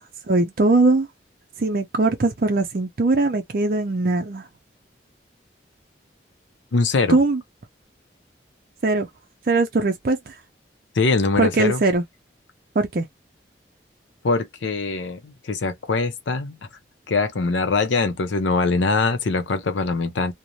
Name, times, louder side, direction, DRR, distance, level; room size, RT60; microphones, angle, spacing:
voice 1, 0.3-1.1 1.6-4.4 7.1-7.4 8.8-9.1 9.5-10.3 11.4-12.0 12.8-13.1, right 3 dB, 50° right, 0.5 m, -20 dB
voice 2, 6.7-7.2 11.0-11.8 14.2-16.6 17.1-20.3, left 3 dB, 90° left, 0.6 m, -22 dB
2.5 x 2.1 x 2.8 m
head